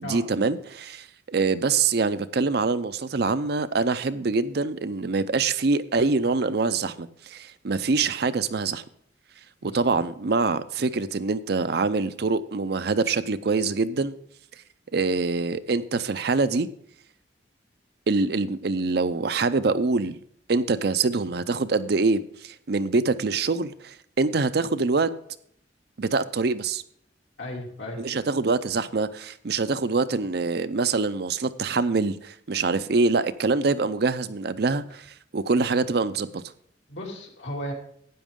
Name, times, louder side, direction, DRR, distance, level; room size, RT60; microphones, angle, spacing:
voice 1, 0.0-8.8 9.6-14.1 14.9-16.7 18.1-20.2 20.5-25.1 26.0-26.8 28.0-36.4, right 4 dB, 60° right, 0.6 m, -25 dB
voice 2, 27.4-28.2 36.9-37.7, left 1 dB, 80° left, 2.9 m, -35 dB
12.5 x 9.3 x 3.7 m
head